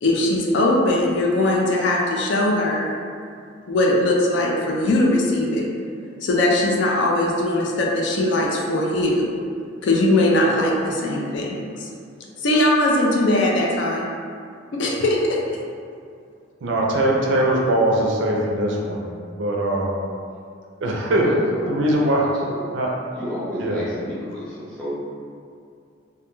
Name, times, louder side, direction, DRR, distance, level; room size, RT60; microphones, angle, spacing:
voice 1, 0.0-2.9 3.7-5.7 6.2-9.3 9.8-11.9 12.4-14.1 14.7-15.4, left 1 dB, 65° left, -2 dB, 0.4 m, -20 dB
voice 2, 16.6-19.0 19.4-20.0 20.8-21.3 21.7-22.3 22.7-22.9 23.6-23.8, right 1 dB, 70° right, -2 dB, 0.4 m, -21 dB
voice 3, 21.2-21.8 22.2-22.7 23.1-24.9, equal, 5° left, -11 dB, 0.6 m, -32 dB
2.2 x 2.1 x 2.9 m, 2.3 s
head